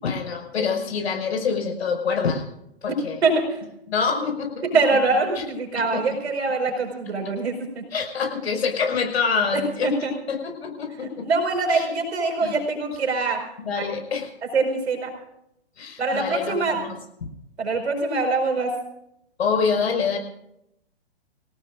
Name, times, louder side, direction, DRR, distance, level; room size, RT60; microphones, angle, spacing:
voice 1, 0.0-2.4 2.8-3.2 3.9-4.6 5.3-5.4 5.7-6.0 7.9-11.3 11.7-11.9 12.4-12.5 13.6-14.3 15.8-17.3 19.4-20.2, left 5 dB, 75° left, 3 dB, 5.7 m, -26 dB
voice 2, 4.6-7.8 9.8-10.1 11.0-13.4 13.7-13.9 14.5-15.1 16.0-16.8 17.6-18.7, right 3 dB, 80° right, 3 dB, 5.1 m, -23 dB
27.0 x 18.0 x 2.5 m, 0.79 s
hypercardioid pair, 140°, 32 cm